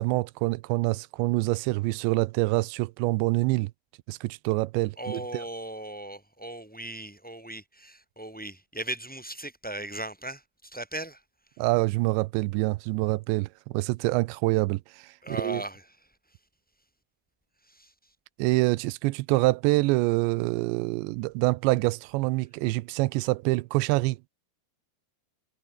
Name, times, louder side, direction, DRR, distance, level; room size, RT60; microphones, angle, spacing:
voice 1, 0.0-3.7 4.1-5.2 11.6-15.6 18.4-24.3, right 22 dB, 90° right, 2.9 m, -26 dB
voice 2, 5.0-11.2 15.2-15.8 17.7-17.9, right 1 dB, ahead, 4.2 m, -37 dB
omnidirectional pair, 5.1 m